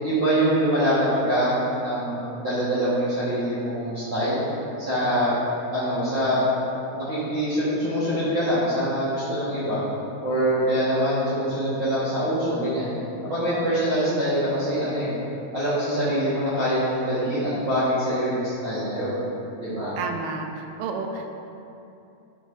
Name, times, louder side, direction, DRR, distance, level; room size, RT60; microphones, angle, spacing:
voice 1, 0.0-4.4 4.8-5.4 5.7-6.4 6.9-9.8 10.2-12.9 13.2-15.1 15.5-19.2 19.6-19.9, equal, 50° right, -13 dB, 1.5 m, -24 dB
voice 2, 20.0-21.3, right 4 dB, 80° right, 4 dB, 2.1 m, -31 dB
11.0 x 5.1 x 2.6 m, 2.7 s
omnidirectional pair, 4.3 m